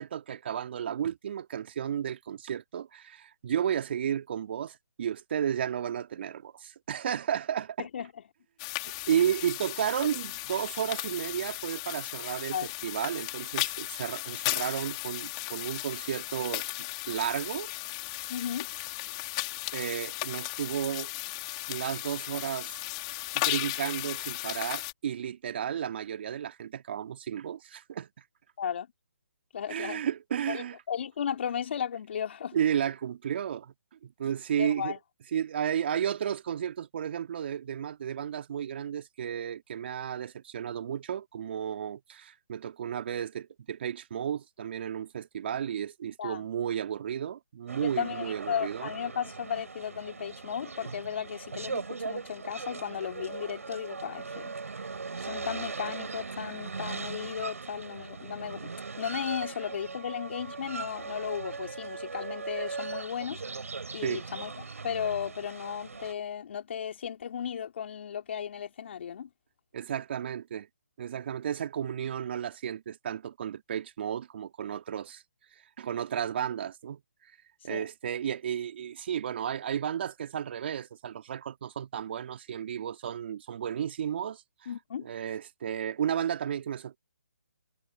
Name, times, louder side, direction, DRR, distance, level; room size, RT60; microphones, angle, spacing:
voice 1, 0.0-7.9 8.8-16.7 17.1-17.7 19.7-21.1 21.7-22.7 23.3-28.1 29.7-30.8 32.5-33.7 34.0-34.9 35.3-48.9 64.0-64.2 69.7-70.7 71.0-75.2 75.8-77.0 77.6-84.4 85.0-87.0, right 9 dB, 45° right, 2.4 m, -33 dB
voice 2, 7.8-8.1 12.5-12.7 18.3-18.7 28.6-28.9 29.5-30.0 30.5-32.6 34.6-35.0 46.2-46.5 47.8-54.6 55.2-63.4 63.9-69.3 77.7-77.9 84.7-85.1, left 8 dB, 50° left, 3.5 m, -35 dB
sound 1, 8.6-24.9, left 26 dB, 25° left, 4.5 m, -36 dB
sound 2, 47.7-66.1, right 4 dB, 75° right, 5.2 m, -39 dB
figure-of-eight pair, 145°, 8 cm